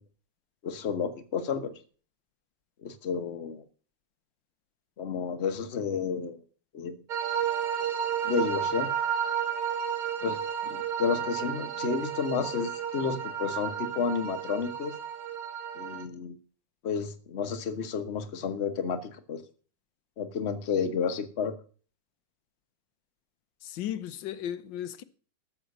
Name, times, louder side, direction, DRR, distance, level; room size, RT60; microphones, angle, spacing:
voice 1, 0.6-1.7 2.8-3.6 5.0-6.4 6.7-7.0 8.2-8.9 10.2-15.0 15.8-16.4 16.8-19.4 20.2-21.5, left 6 dB, 40° left, 1.3 m, -31 dB
sound 1, 7.1-16.0, right 8 dB, 55° right, 1.6 m, -32 dB
voice 2, 23.6-25.0, left 11 dB, 90° left, 1.5 m, -35 dB
13.5 x 7.1 x 6.6 m
omnidirectional pair, 1.9 m